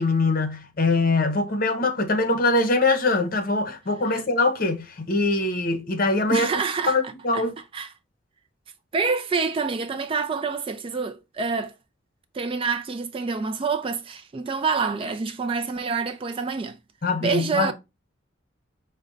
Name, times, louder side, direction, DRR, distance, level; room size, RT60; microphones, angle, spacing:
voice 1, 0.0-6.5 6.9-7.5 17.0-17.7, left 3 dB, 45° left, 0.8 m, -23 dB
voice 2, 6.3-7.0 7.3-7.4 7.7-7.9 8.9-11.7 12.3-16.8 17.2-17.7, right 5 dB, 25° right, 0.3 m, -27 dB
5.0 x 2.2 x 3.8 m
head